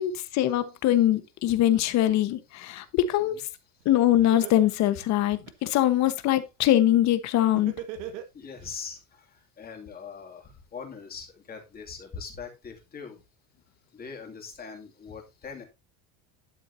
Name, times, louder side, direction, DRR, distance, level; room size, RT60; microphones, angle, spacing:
voice 1, 0.0-3.4 3.8-7.7, left 13 dB, 45° left, 1.2 m, -23 dB
Laughter, 3.8-3.9 4.3-5.8 7.5-8.7, right 11 dB, 75° right, 1.8 m, -38 dB
voice 2, 8.3-13.2 13.9-15.6, left 5 dB, 25° left, 2.5 m, -42 dB
11.5 x 7.1 x 2.7 m
cardioid pair, 145°, 37 cm